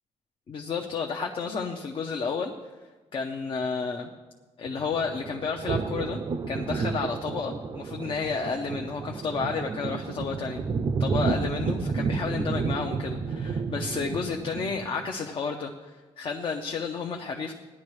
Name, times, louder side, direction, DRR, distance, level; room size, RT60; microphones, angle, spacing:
voice 1, 0.5-2.5 3.1-4.1 4.6-6.2 6.5-10.6 11.0-17.5, left 5 dB, 45° left, 2 dB, 0.8 m, -31 dB
sound 1, 4.6-15.1, right 4 dB, 35° right, 0.5 m, -31 dB
17.5 x 10.5 x 3.2 m, 1.2 s
cardioid pair, 150°, 12 cm